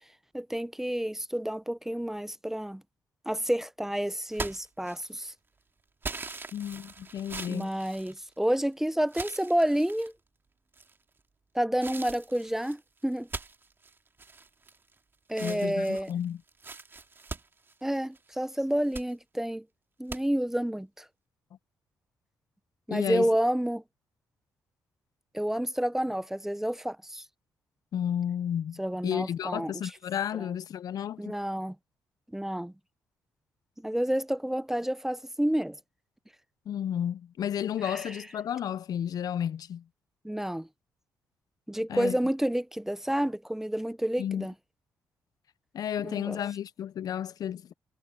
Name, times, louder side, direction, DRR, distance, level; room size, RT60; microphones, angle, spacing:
voice 1, 0.3-2.8 3.3-5.3 7.5-10.1 11.5-13.3 15.3-16.1 17.8-19.6 20.0-21.1 22.9-23.8 25.3-27.2 28.8-29.7 30.4-30.5 31.2-31.8 32.3-32.7 33.8-35.8 37.8-38.0 40.2-40.7 41.7-44.5 46.0-46.4, equal, 5° right, 0.7 m, -29 dB
sound 1, 4.3-5.3 6.0-8.6 9.1-10.1 10.7-11.2 11.8-15.0 15.3-18.3 18.7-19.1 20.1-20.2, right 4 dB, 30° right, 2.3 m, -41 dB
voice 2, 6.5-7.7 15.4-16.4 22.9-23.3 27.9-31.4 36.7-39.8 41.9-42.2 44.2-44.5 45.7-47.7, left 9 dB, 65° left, 0.7 m, -32 dB
cardioid pair, 70°, 7 cm